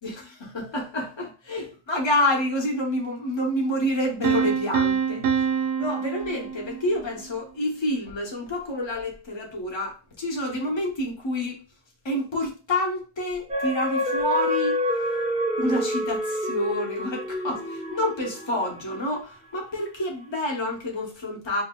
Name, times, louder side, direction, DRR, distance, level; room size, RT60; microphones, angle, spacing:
voice 1, 0.0-5.5 5.8-11.6 12.0-14.8 15.6-21.6, left 1 dB, 25° left, 0.8 m, -28 dB
Piano, 4.2-7.1, right 7 dB, 70° right, 0.8 m, -26 dB
sound 1, 13.5-19.2 19.7-19.8, left 1 dB, 5° right, 0.7 m, -28 dB
4.6 x 2.6 x 2.2 m
omnidirectional pair, 1.2 m